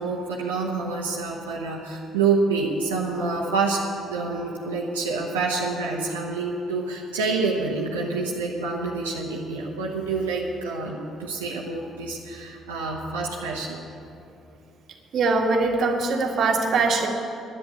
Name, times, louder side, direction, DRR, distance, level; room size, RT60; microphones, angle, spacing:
voice 1, 0.0-3.8 4.1-13.8, right 4 dB, 85° right, -3 dB, 1.2 m, -27 dB
voice 2, 15.1-17.1, right 3 dB, 55° right, 1 dB, 1.8 m, -22 dB
10.5 x 9.8 x 8.5 m, 2.7 s
hypercardioid pair, 50°, 0 cm